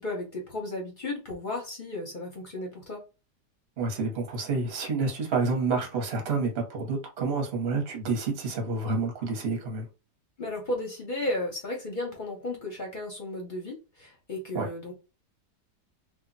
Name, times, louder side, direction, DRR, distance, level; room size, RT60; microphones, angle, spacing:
voice 1, 0.0-3.0 10.4-14.9, left 1 dB, 45° left, 0.7 m, -34 dB
voice 2, 3.8-9.9 14.5-14.7, right 4 dB, 45° right, 1.0 m, -29 dB
2.7 x 2.2 x 3.8 m
omnidirectional pair, 1.8 m